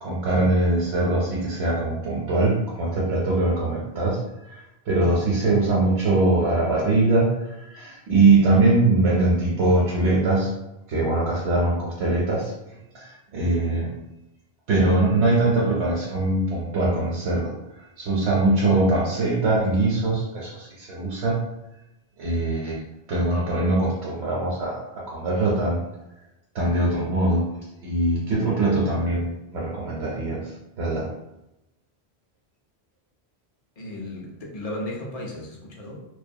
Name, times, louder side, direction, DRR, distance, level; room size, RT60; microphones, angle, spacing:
voice 1, 0.0-10.5 10.9-12.5 12.9-13.9 14.7-21.4 22.2-22.8 23.1-25.8 26.5-27.5 27.8-31.1, right 2 dB, 90° right, -5 dB, 0.9 m, -22 dB
voice 2, 33.8-36.1, left 1 dB, 50° left, -1 dB, 0.4 m, -35 dB
2.2 x 2.2 x 2.6 m, 0.92 s
omnidirectional pair, 1.1 m